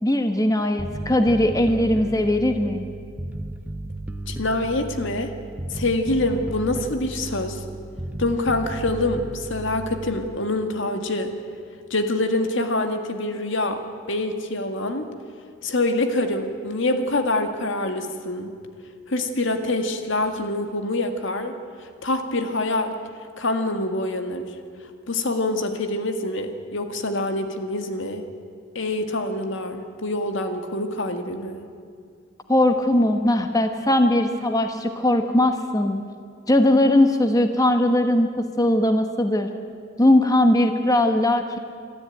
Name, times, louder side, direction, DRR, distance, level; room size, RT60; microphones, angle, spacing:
voice 1, 0.0-2.8 32.5-36.0 36.5-39.5 40.0-41.6, left 1 dB, 20° left, 6 dB, 1.1 m, -19 dB
Bass guitar, 0.8-10.4, right 1 dB, 10° right, 0.8 m, -34 dB
voice 2, 4.3-5.3 5.7-7.6 8.2-11.3 11.9-13.8 14.1-15.1 15.6-18.5 19.1-21.5 22.0-23.0 23.4-24.5 25.1-28.2 28.8-31.6, left 2 dB, 70° left, 6 dB, 1.9 m, -25 dB
26.5 x 13.0 x 9.1 m, 2.2 s
head